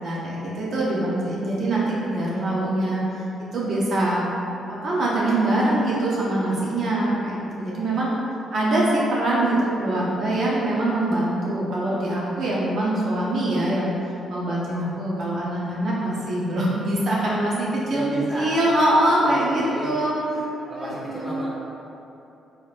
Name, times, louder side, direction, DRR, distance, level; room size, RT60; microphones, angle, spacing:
voice 1, 0.0-4.2 4.7-8.1 8.5-13.9 14.3-18.0 18.3-20.1 20.8-21.3, right 1 dB, 60° right, -6 dB, 0.7 m, -23 dB
voice 2, 17.9-18.6 19.2-19.9 20.7-21.5, right 1 dB, 10° right, -7 dB, 1.0 m, -32 dB
4.1 x 3.2 x 2.5 m, 2.9 s
cardioid pair, 90°, 0 cm